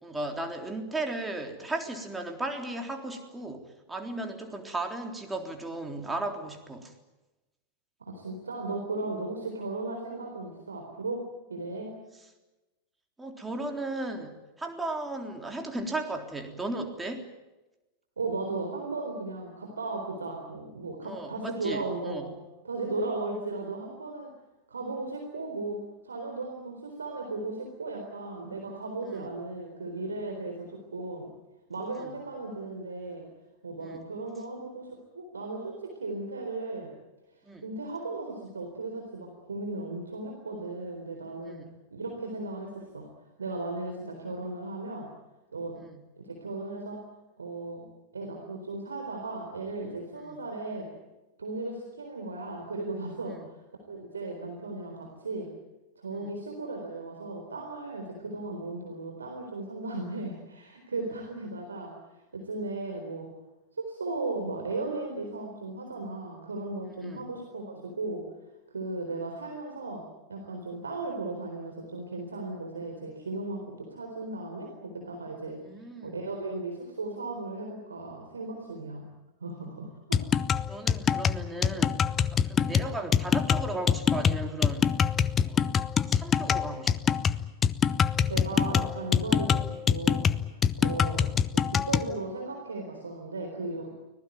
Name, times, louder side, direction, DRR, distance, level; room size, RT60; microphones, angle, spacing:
voice 1, 0.0-6.9 13.2-17.3 21.0-22.3 29.0-29.3 31.9-32.2 33.8-34.0 37.5-37.6 41.5-41.7 45.8-46.0 50.2-50.4 53.3-53.5 56.1-56.3 67.0-67.3 75.6-76.3 80.6-82.0 82.3-84.9 85.4-85.7 86.1-87.2, right 2 dB, 10° right, 4 dB, 3.5 m, -36 dB
voice 2, 8.0-11.2 11.5-11.9 18.2-22.3 22.6-24.3 24.7-25.8 26.0-31.3 31.7-33.2 33.6-36.9 37.6-41.6 41.9-43.1 43.4-45.1 45.5-45.8 46.2-47.0 47.4-47.9 48.1-50.9 51.4-53.6 53.9-55.5 56.0-61.9 62.3-63.3 63.8-68.2 68.7-70.0 70.3-75.6 76.0-79.0 79.4-80.5 88.3-90.3 90.8-93.9, right 2 dB, 75° right, 2 dB, 4.0 m, -36 dB
sound 1, 80.1-92.1, left 7 dB, 25° left, 0.9 m, -25 dB
25.0 x 18.5 x 9.4 m, 1.1 s
figure-of-eight pair, 90°, 0 cm